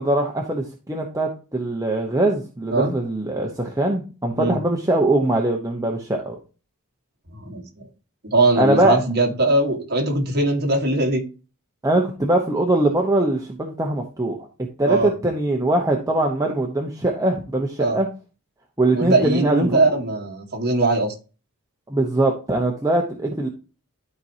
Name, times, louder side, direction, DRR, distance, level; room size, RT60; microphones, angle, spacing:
voice 1, 0.0-6.4 8.6-9.0 11.8-14.5 14.8-18.1 18.8-19.8 21.9-23.5, right 1 dB, 15° right, 0 dB, 0.9 m, -22 dB
voice 2, 8.2-11.2 14.9-15.1 17.8-18.0 18.9-21.1, right 2 dB, 45° right, 1 dB, 1.7 m, -20 dB
12.5 x 4.6 x 2.8 m, 0.34 s
head